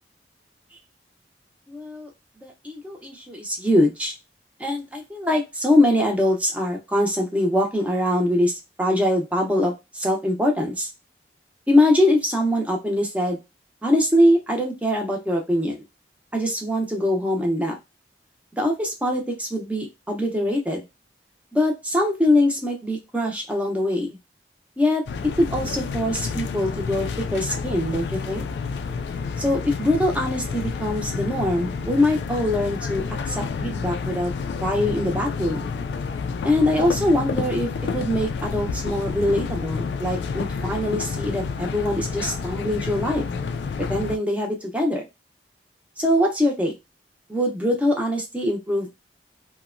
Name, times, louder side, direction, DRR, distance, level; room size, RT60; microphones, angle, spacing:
voice 1, 1.7-2.1 2.4-4.1 4.6-10.9 11.7-13.4 13.8-15.8 16.3-17.7 18.6-20.8 21.5-24.2 24.8-25.0 25.4-28.4 29.4-34.3 34.6-35.7 36.4-43.3 43.8-45.0 46.0-46.7 47.3-48.9, left 1 dB, 10° right, 0 dB, 0.6 m, -23 dB
sound 1, 25.1-44.2, left 5 dB, 75° left, 0.3 m, -29 dB
2.8 x 2.1 x 2.4 m, 0.23 s
head